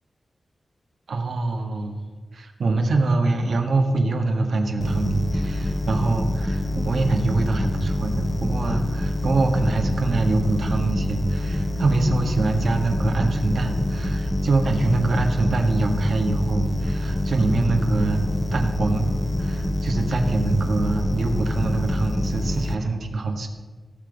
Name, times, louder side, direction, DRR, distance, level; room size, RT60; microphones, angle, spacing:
voice 1, 1.1-2.0 2.3-18.2 18.5-19.1 19.4-23.5, right 3 dB, 85° right, 3 dB, 1.5 m, -24 dB
sound 1, 4.8-22.7, left 1 dB, 30° left, 1.0 m, -26 dB
17.5 x 6.9 x 5.3 m, 1.4 s
wide cardioid pair, 75°, 0 cm